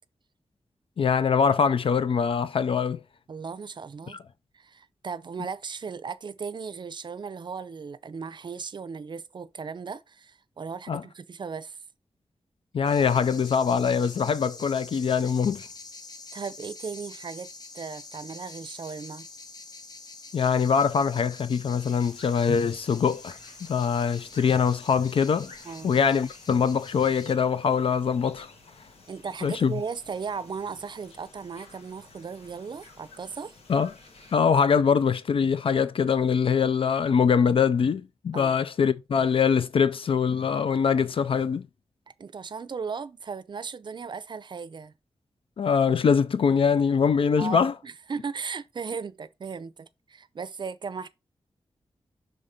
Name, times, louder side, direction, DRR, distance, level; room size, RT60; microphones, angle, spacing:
voice 1, 1.0-3.0 4.1-4.2 10.9-11.0 12.7-15.7 20.3-25.5 25.8-28.5 29.4-29.8 33.7-33.9 34.3-41.7 45.6-47.7, left 6 dB, 60° left, 0.4 m, -23 dB
voice 2, 3.3-4.2 4.5-11.8 16.3-17.5 17.7-19.3 25.6-25.9 29.1-33.5 38.3-38.5 42.2-44.9 47.4-51.1, right 5 dB, 50° right, 0.5 m, -36 dB
sound 1, 12.9-27.3, left 3 dB, 40° left, 0.8 m, -46 dB
sound 2, 21.9-34.4, left 3 dB, 80° left, 1.7 m, -53 dB
5.7 x 3.8 x 5.0 m
wide cardioid pair, 130°, 10 cm